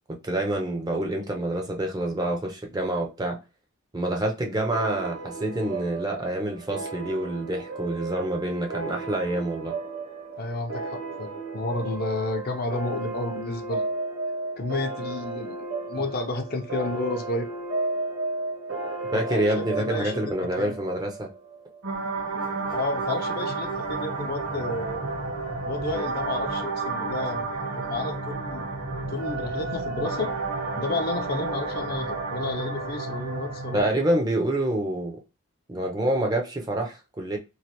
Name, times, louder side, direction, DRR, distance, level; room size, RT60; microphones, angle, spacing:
voice 1, 0.1-3.4 3.9-9.7 19.1-21.3 33.7-35.2 35.7-37.4, right 1 dB, 15° right, 0.4 m, -27 dB
sound 1, 4.7-21.8, right 3 dB, 55° right, 0.8 m, -34 dB
voice 2, 10.4-13.8 14.6-15.6 15.9-17.5 19.0-20.8 22.7-25.1 25.7-28.7 29.1-30.3 30.8-34.0, left 2 dB, 40° left, 0.4 m, -31 dB
sound 2, 21.8-33.8, right 3 dB, 70° right, 1.1 m, -31 dB
3.1 x 2.4 x 2.8 m
head